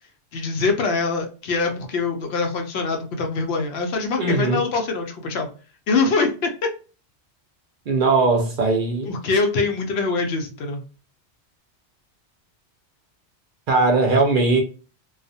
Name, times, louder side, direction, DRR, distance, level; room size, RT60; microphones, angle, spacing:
voice 1, 0.3-5.5 5.9-6.5 9.1-10.8, left 4 dB, 70° left, 0.8 m, -23 dB
voice 2, 4.2-4.6 7.9-9.1 13.7-14.6, right 3 dB, 55° right, 0.6 m, -19 dB
2.3 x 2.1 x 2.5 m
omnidirectional pair, 1.2 m